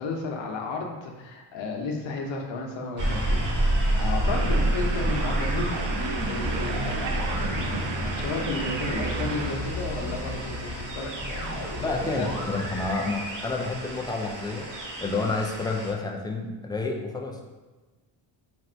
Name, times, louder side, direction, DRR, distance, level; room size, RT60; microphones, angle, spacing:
voice 1, 0.0-12.5, left 3 dB, 75° left, 1 dB, 0.8 m, -34 dB
sound 1, 3.0-15.9, right 1 dB, 40° right, 1.0 m, -29 dB
sound 2, 4.3-9.5, right 5 dB, 75° right, 0.6 m, -34 dB
sound 3, 6.2-12.9, left 1 dB, 15° right, 1.3 m, -36 dB
voice 2, 11.8-17.4, left 3 dB, 10° left, 1 dB, 0.4 m, -30 dB
3.3 x 2.5 x 4.3 m, 1.2 s
cardioid pair, 95°, 46 cm